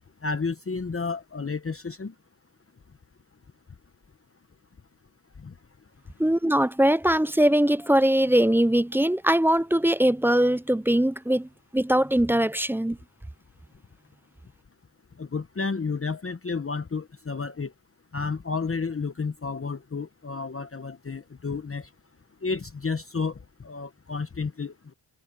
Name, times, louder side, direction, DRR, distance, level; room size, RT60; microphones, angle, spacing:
voice 1, 0.2-2.1 5.4-5.5 15.2-17.7 18.1-21.9 22.4-24.9, left 4 dB, 25° left, 1.0 m, -31 dB
voice 2, 6.2-13.0, right 1 dB, 5° right, 0.4 m, -21 dB
cardioid pair, 70°, 49 cm